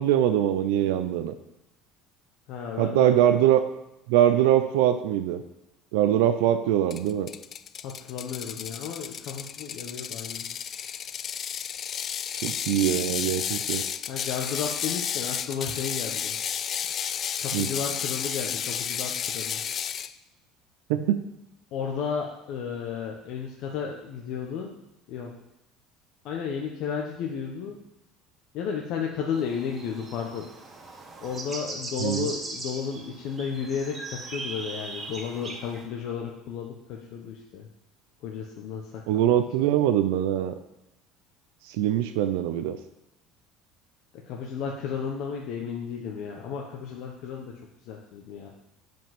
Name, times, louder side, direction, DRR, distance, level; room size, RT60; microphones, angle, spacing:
voice 1, 0.0-1.3 2.8-3.6 4.1-5.4 5.9-7.3 12.4-13.8 17.5-17.7 20.9-21.2 32.0-32.3 39.1-40.5 41.6-42.8, right 11 dB, 85° right, 8 dB, 0.5 m, -23 dB
voice 2, 2.5-3.1 7.8-10.5 14.1-16.3 17.4-19.6 21.7-24.7 25.1-25.3 26.2-27.8 28.5-30.5 31.2-37.7 38.2-39.3 44.1-47.6 47.9-48.5, left 6 dB, 60° left, 0 dB, 1.0 m, -33 dB
Ratchet pawl, 6.9-20.1, left 8 dB, 40° left, 0.3 m, -32 dB
sound 1, 29.3-35.8, right 2 dB, 25° right, 1.9 m, -39 dB
7.6 x 5.3 x 5.9 m, 0.89 s
cardioid pair, 125°, 0 cm